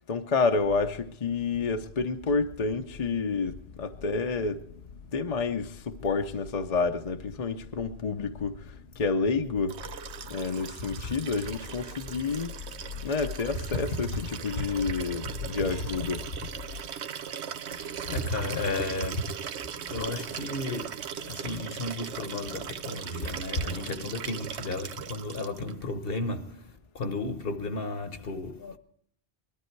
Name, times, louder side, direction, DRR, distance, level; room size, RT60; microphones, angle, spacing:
voice 1, 0.1-4.7 5.1-9.8 10.3-12.6 13.0-16.3, left 4 dB, 40° left, 0.8 m, -29 dB
sound 1, 0.5-16.8, left 7 dB, 90° left, 1.1 m, -45 dB
Liquid, 9.7-25.7 27.0-27.1, right 8 dB, 85° right, 1.0 m, -39 dB
voice 2, 17.7-28.8, left 2 dB, 60° left, 1.3 m, -34 dB
21.0 x 12.5 x 4.6 m
omnidirectional pair, 1.1 m